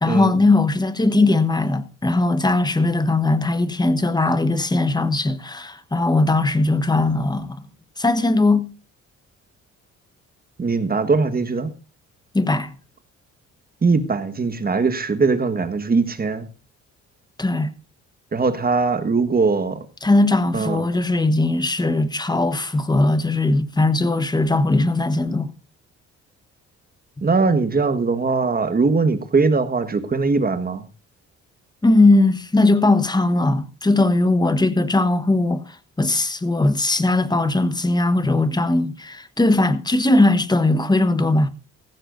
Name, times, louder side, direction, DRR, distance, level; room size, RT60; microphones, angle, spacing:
voice 1, 0.0-7.6 8.0-8.7 12.3-12.7 17.4-17.7 20.0-25.5 31.8-35.6 36.0-41.5, left 2 dB, 15° left, 1.2 m, -19 dB
voice 2, 10.6-11.7 13.8-16.5 18.3-19.8 20.5-20.8 27.2-30.8, right 4 dB, 30° right, 1.5 m, -20 dB
15.5 x 15.0 x 2.6 m
cardioid pair, 90°, 30 cm